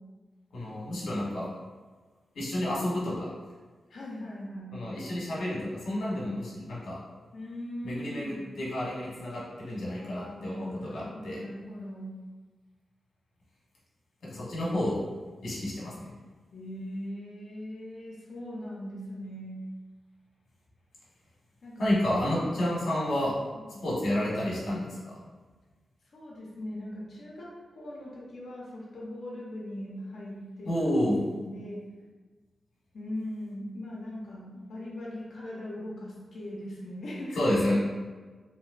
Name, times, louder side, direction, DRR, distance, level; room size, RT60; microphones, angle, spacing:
voice 1, 0.5-1.5 2.3-3.3 4.7-7.0 7.8-11.4 14.2-15.0 15.4-16.1 21.8-23.3 23.8-25.2 30.6-31.2 37.4-37.8, left 1 dB, 85° left, -6 dB, 1.1 m, -30 dB
voice 2, 3.9-4.8 7.3-8.4 10.0-12.1 16.5-19.6 21.6-21.9 22.6-22.8 23.5-23.8 26.1-31.8 32.9-37.4, left 1 dB, 65° left, -5 dB, 0.7 m, -40 dB
2.9 x 2.9 x 2.5 m, 1.4 s
wide cardioid pair, 95°, 0 cm